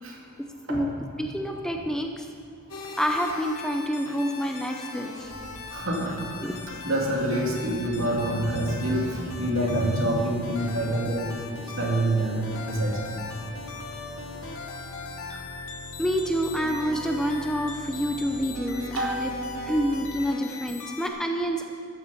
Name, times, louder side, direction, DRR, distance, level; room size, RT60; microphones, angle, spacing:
voice 1, 1.2-2.3 2.9-5.3 6.4-6.5 16.0-19.3 19.6-21.6, equal, 5° left, 3 dB, 0.5 m, -28 dB
sound 1, 2.7-21.1, left 4 dB, 80° left, 1.4 m, -40 dB
sound 2, 5.2-9.5 10.6-20.3, left 1 dB, 60° left, 2.4 m, -44 dB
voice 2, 5.7-6.5 6.8-11.3 11.8-13.0 19.0-19.8, right 1 dB, 70° right, -2 dB, 2.5 m, -27 dB
13.5 x 7.2 x 7.0 m, 2.3 s
head